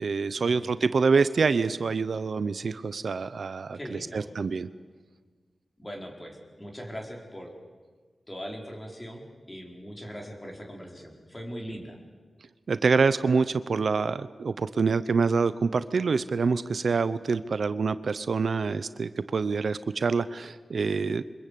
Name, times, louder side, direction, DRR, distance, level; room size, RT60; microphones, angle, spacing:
voice 1, 0.0-4.7 12.7-21.2, right 4 dB, 65° right, 13 dB, 0.8 m, -26 dB
voice 2, 3.7-4.3 5.8-7.5 8.3-12.0, equal, 15° left, 1 dB, 4.7 m, -40 dB
28.5 x 24.5 x 8.6 m, 1.5 s
wide cardioid pair, 135°, 0 cm